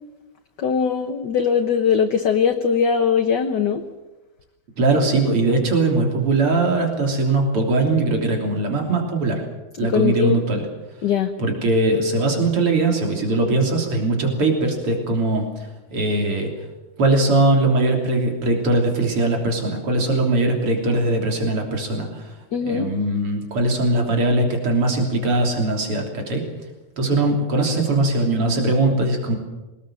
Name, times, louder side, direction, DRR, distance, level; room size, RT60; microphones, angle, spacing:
voice 1, 0.6-3.8 9.9-10.4 11.0-11.3 22.5-22.9, left 7 dB, 55° left, 5 dB, 1.6 m, -20 dB
voice 2, 4.8-9.4 9.8-10.7 11.4-16.7 17.0-26.4 27.0-29.4, right 2 dB, 80° right, 2 dB, 4.2 m, -20 dB
23.5 x 19.5 x 7.6 m, 1.1 s
omnidirectional pair, 2.4 m